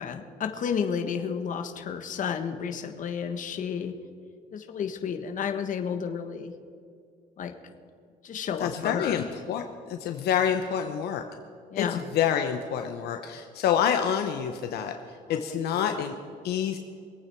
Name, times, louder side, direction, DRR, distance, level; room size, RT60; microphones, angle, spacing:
voice 1, 0.0-4.0 4.5-6.5 7.4-7.5 8.2-9.3 11.7-12.0 15.3-15.9, left 7 dB, 50° left, 6 dB, 1.4 m, -32 dB
voice 2, 8.6-11.2 11.8-14.9 15.3-16.1 16.4-16.8, left 8 dB, 75° left, 6 dB, 0.9 m, -27 dB
24.0 x 8.8 x 4.6 m, 2.3 s
cardioid pair, 110°, 17 cm